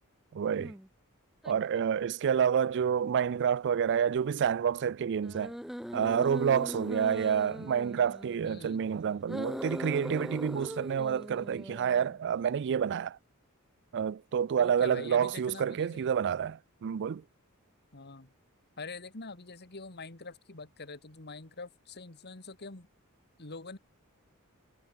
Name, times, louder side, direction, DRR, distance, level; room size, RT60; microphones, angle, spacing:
voice 1, 0.3-0.7 1.4-5.5 5.9-13.2 13.9-17.2, right 7 dB, 55° right, 0.4 m, -28 dB
sound 1, 0.6-0.9 1.4-1.5 5.2-8.5 9.2-12.2, equal, ahead, 0.9 m, -40 dB
voice 2, 8.4-8.9 14.6-16.1 17.9-18.3 18.8-22.9 23.4-23.8, left 3 dB, 50° left, 2.3 m, -45 dB
head